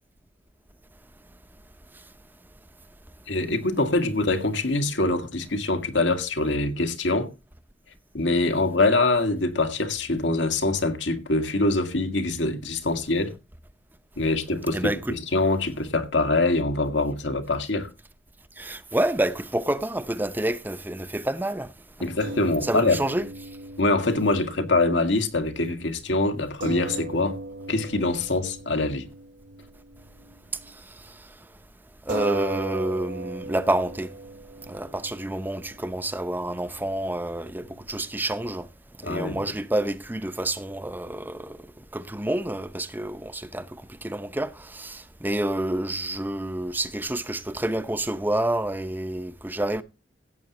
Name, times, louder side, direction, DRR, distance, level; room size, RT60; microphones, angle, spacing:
voice 1, 3.3-7.3 8.1-13.3 14.2-17.9 22.0-23.0 23.8-27.4 27.7-29.1 39.0-39.4, left 2 dB, 85° left, 1.9 m, -24 dB
voice 2, 14.7-15.1 18.6-21.7 22.6-23.3 32.1-34.1 34.7-38.7 39.0-41.6 41.9-49.8, right 1 dB, 10° right, 0.7 m, -28 dB
sound 1, 22.2-30.7 31.0-31.2 32.1-38.6, right 2 dB, 80° right, 2.3 m, -39 dB
16.5 x 8.2 x 3.0 m
head